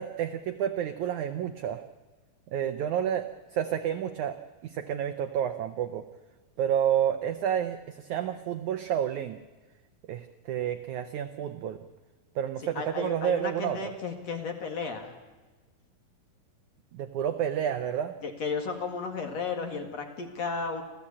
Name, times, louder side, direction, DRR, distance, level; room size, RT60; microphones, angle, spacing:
voice 1, 0.0-1.8 2.5-3.3 3.5-6.1 6.6-9.4 10.1-11.8 12.4-13.8 16.9-18.1, right 9 dB, 80° right, 8 dB, 1.7 m, -30 dB
voice 2, 12.8-15.1 18.2-20.8, left 4 dB, 50° left, 4 dB, 2.6 m, -34 dB
26.5 x 16.0 x 8.6 m, 1.3 s
omnidirectional pair, 4.5 m